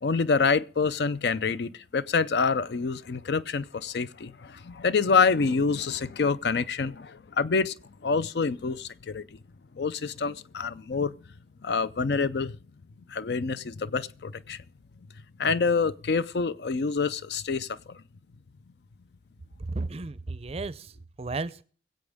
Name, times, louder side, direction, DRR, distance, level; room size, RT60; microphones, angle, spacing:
voice 1, 0.0-7.7 8.0-9.2 9.7-11.2 11.6-12.6 13.1-14.6 15.4-18.0, left 4 dB, 65° left, 0.5 m, -27 dB
voice 2, 19.6-20.9 21.2-21.6, right 3 dB, 35° right, 0.5 m, -33 dB
22.5 x 8.0 x 3.5 m
head